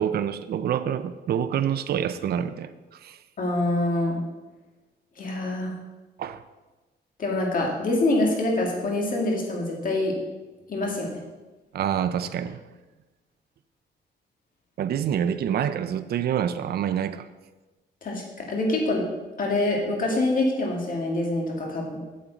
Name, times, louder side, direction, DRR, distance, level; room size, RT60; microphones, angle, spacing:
voice 1, 0.0-3.2 6.2-6.4 11.7-12.6 14.8-17.3, right 9 dB, 60° right, 12 dB, 0.5 m, -27 dB
voice 2, 3.4-4.2 5.2-5.7 7.2-10.2 10.7-11.1 18.0-19.1 19.4-22.0, left 2 dB, 50° left, 0 dB, 2.1 m, -25 dB
8.6 x 7.3 x 4.0 m, 1.2 s
cardioid pair, 110°, 18 cm